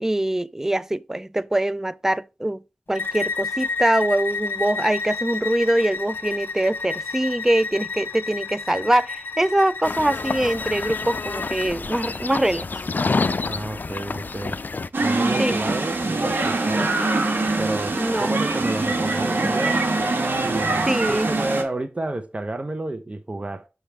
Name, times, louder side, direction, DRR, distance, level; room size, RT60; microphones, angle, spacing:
voice 1, 0.0-2.6 2.9-12.7 15.4-15.6 18.0-18.3 20.9-21.3, right 1 dB, 10° right, 0.4 m, -23 dB
Bowed string instrument, 2.9-11.7, left 4 dB, 70° left, 1.0 m, -30 dB
sound 1, 9.8-14.9, left 4 dB, 55° left, 0.4 m, -28 dB
voice 2, 13.4-14.6 15.0-17.0 17.6-19.8 20.4-23.7, right 2 dB, 35° right, 0.8 m, -30 dB
sound 2, 14.9-21.6, right 2 dB, 70° right, 1.6 m, -23 dB
6.3 x 3.3 x 5.9 m
cardioid pair, 45°, 4 cm